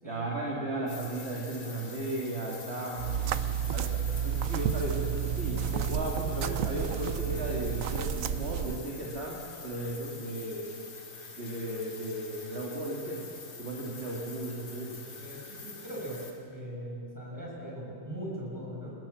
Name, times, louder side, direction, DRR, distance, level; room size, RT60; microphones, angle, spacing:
voice 1, 0.0-3.1 3.7-3.9 4.2-9.4 9.6-10.6 11.3-13.2 13.6-15.0, right 1 dB, 30° right, -3 dB, 2.9 m, -35 dB
sound 1, 0.9-16.3, left 4 dB, 75° left, 3.6 m, -46 dB
sound 2, 3.0-8.8, right 9 dB, 85° right, 0.7 m, -31 dB
voice 2, 15.2-16.2 16.5-18.9, equal, 10° right, -4 dB, 7.5 m, -40 dB
30.0 x 19.0 x 7.3 m, 2.5 s
omnidirectional pair, 2.3 m